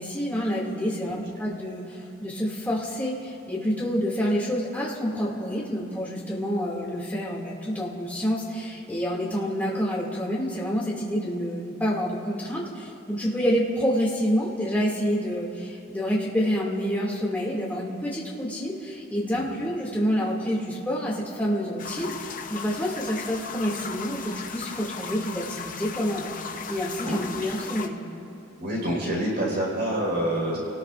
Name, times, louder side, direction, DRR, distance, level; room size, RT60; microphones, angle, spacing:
voice 1, 0.0-26.3 26.7-28.0, equal, 10° left, -5 dB, 2.3 m, -28 dB
sound 1, 21.8-27.9, left 6 dB, 40° left, 0.8 m, -37 dB
voice 2, 28.6-30.6, right 1 dB, 50° right, -3 dB, 4.6 m, -27 dB
30.0 x 19.0 x 2.5 m, 2.8 s
head